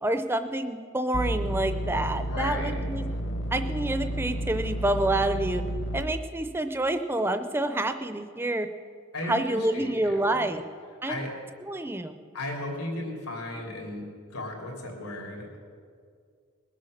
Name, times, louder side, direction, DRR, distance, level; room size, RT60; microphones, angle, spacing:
voice 1, 0.0-3.1 3.5-5.6 5.9-8.7 9.3-10.6 11.0-11.2 11.7-12.1, right 1 dB, 10° right, 9 dB, 0.5 m, -28 dB
sound 1, 1.1-6.0, right 1 dB, 50° left, 1.0 m, -31 dB
voice 2, 2.3-2.7 9.1-10.5 11.1-11.3 12.3-14.0 14.3-15.6, left 1 dB, 85° left, 0 dB, 3.2 m, -35 dB
21.0 x 8.4 x 6.5 m, 2.1 s
head